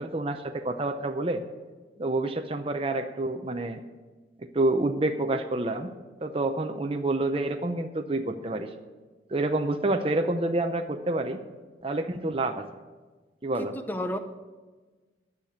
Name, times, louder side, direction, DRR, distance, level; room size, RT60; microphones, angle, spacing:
voice 1, 0.0-1.4 2.0-3.8 4.5-5.9 6.2-8.7 9.3-11.4 11.8-12.7 13.4-13.7, right 2 dB, 30° right, 5 dB, 0.6 m, -28 dB
voice 2, 13.6-14.2, equal, 10° left, 8 dB, 0.7 m, -32 dB
12.0 x 6.7 x 7.1 m, 1.3 s
head